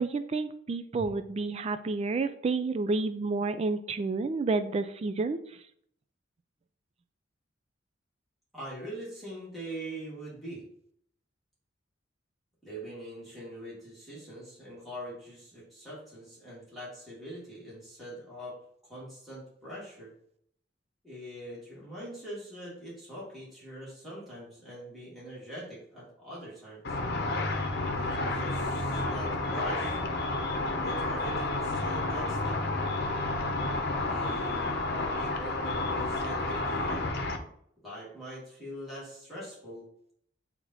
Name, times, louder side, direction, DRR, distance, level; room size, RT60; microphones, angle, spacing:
voice 1, 0.0-5.4, right 3 dB, 35° right, 11 dB, 0.3 m, -30 dB
voice 2, 8.5-10.6 12.6-18.6 18.9-20.1 21.0-27.0 27.9-30.0 30.6-32.7 34.1-37.0 37.8-39.8, equal, ahead, -9 dB, 2.4 m, -42 dB
Car / Traffic noise roadway noise / Engine, 26.8-37.4, left 2 dB, 60° left, 0.8 m, -30 dB
8.4 x 2.9 x 4.0 m, 0.68 s
head